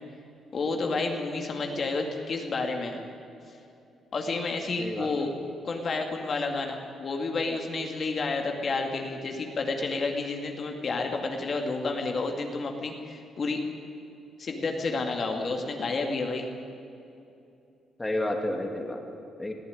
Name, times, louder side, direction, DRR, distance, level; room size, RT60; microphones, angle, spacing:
voice 1, 0.5-3.0 4.1-5.3 5.6-13.6 14.4-16.5, left 3 dB, 45° left, 3 dB, 2.4 m, -30 dB
voice 2, 4.8-5.4 18.0-19.5, left 1 dB, 15° left, 3 dB, 2.4 m, -32 dB
20.0 x 14.5 x 9.8 m, 2.7 s
cardioid pair, 90°, 0 cm